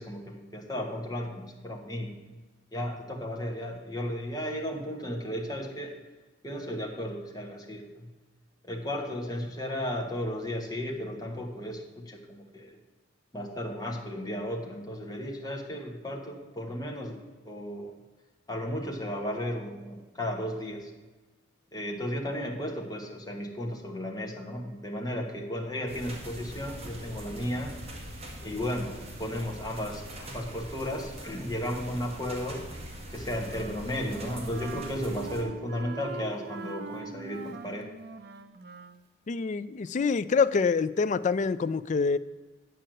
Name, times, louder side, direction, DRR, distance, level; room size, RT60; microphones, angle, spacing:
voice 1, 0.0-2.1 2.7-5.9 6.4-8.1 8.7-12.8 13.3-17.2 17.4-17.9 18.5-20.9 21.7-27.7 28.4-32.6 33.1-37.9, equal, 20° left, 1 dB, 1.2 m, -34 dB
sound 1, 25.9-35.4, right 1 dB, 30° right, 1.8 m, -43 dB
Wind instrument woodwind instrument, 33.4-39.0, right 4 dB, 55° right, 0.6 m, -43 dB
voice 2, 39.3-42.2, left 5 dB, 40° left, 14 dB, 0.3 m, -26 dB
9.1 x 5.6 x 7.6 m, 1.2 s
head